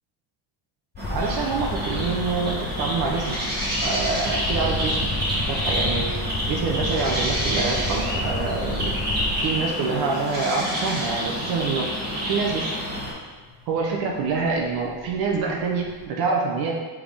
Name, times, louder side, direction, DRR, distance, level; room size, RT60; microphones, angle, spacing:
sound 1, 0.9-9.7 10.9-11.0 13.1-13.2 13.4-16.0, left 1 dB, 25° left, 0.5 m, -31 dB
sound 2, 1.0-13.1, equal, 20° right, 1.4 m, -28 dB
voice 1, 1.1-3.4 3.8-6.1 6.5-9.0 9.4-11.9 12.3-12.7 13.7-16.8, right 4 dB, 50° right, 0 dB, 0.6 m, -26 dB
5.0 x 3.6 x 5.1 m, 1.4 s
cardioid pair, 180°, 49 cm